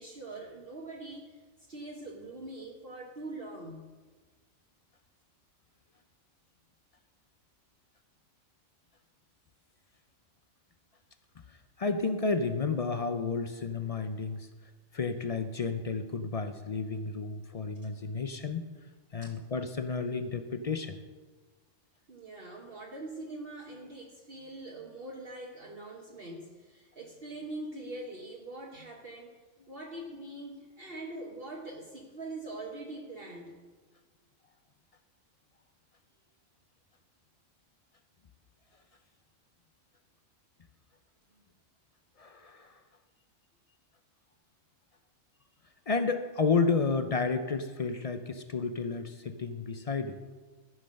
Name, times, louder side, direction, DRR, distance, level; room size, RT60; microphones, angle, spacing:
voice 1, 0.0-1.4 1.7-3.9 19.2-19.4 22.1-29.4 29.7-33.5, right 2 dB, 50° right, -1 dB, 1.3 m, -43 dB
voice 2, 11.5-14.5 14.9-18.6 19.1-21.0 42.2-42.8 45.9-50.2, left 4 dB, 50° left, 8 dB, 0.4 m, -31 dB
14.0 x 5.7 x 6.4 m, 1.4 s
omnidirectional pair, 1.3 m